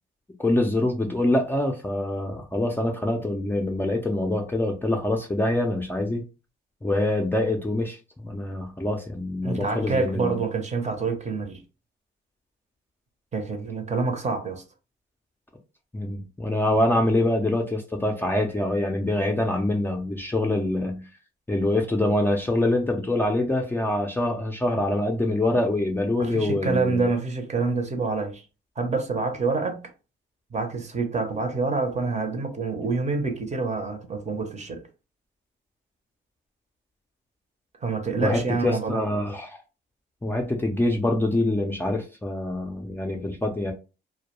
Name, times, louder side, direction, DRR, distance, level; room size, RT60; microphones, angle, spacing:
voice 1, 0.4-6.2 6.8-8.0 8.2-10.4 15.9-21.0 21.5-27.1 38.2-39.6 40.2-43.7, left 1 dB, 10° left, 0.5 m, -25 dB
voice 2, 9.4-11.6 13.3-14.6 26.2-28.4 28.8-29.8 30.5-34.8 37.8-39.0, right 4 dB, 35° right, 0.7 m, -27 dB
2.2 x 2.2 x 2.9 m
cardioid pair, 90°, 20 cm